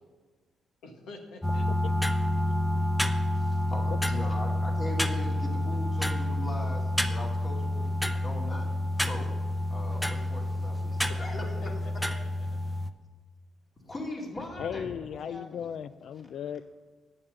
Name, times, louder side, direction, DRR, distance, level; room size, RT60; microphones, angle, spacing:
voice 1, 0.8-1.9 2.7-3.1 11.1-12.2, left 2 dB, 85° left, 1.7 m, -47 dB
sound 1, 1.4-12.9, left 1 dB, 5° left, 0.7 m, -29 dB
voice 2, 3.3-8.7 9.0-9.3 9.7-11.5 13.8-15.7, left 1 dB, 35° left, 2.6 m, -40 dB
voice 3, 14.6-16.6, left 8 dB, 65° left, 0.3 m, -36 dB
9.6 x 7.2 x 6.7 m
cardioid pair, 90°, 0 cm